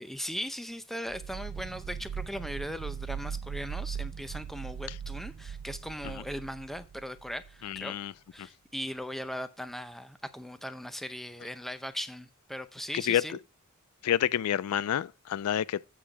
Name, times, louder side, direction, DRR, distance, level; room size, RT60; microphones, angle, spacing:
voice 1, 0.0-7.9 8.3-13.4, equal, ahead, 0.6 m, -39 dB
sound 1, 1.1-7.8, right 7 dB, 75° right, 0.3 m, -39 dB
voice 2, 7.6-8.1 8.4-8.5 12.9-13.4 14.0-15.9, left 10 dB, 85° left, 0.3 m, -29 dB
8.2 x 6.2 x 4.6 m
head